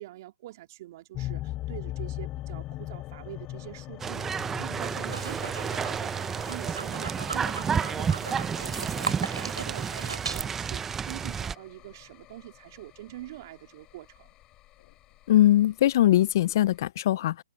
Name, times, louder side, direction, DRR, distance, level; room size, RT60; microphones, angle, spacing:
voice 1, 0.0-14.3, right 16 dB, 40° right, 2.7 m, -45 dB
sound 1, 1.1-16.9, left 16 dB, 20° left, 4.3 m, -42 dB
sound 2, 4.0-11.5, right 6 dB, 10° right, 0.7 m, -31 dB
sound 3, 4.7-10.5, right 5 dB, 85° right, 3.5 m, -38 dB
voice 2, 15.3-17.4, left 13 dB, 45° left, 0.4 m, -21 dB
open air
hypercardioid pair, 145°, 3 cm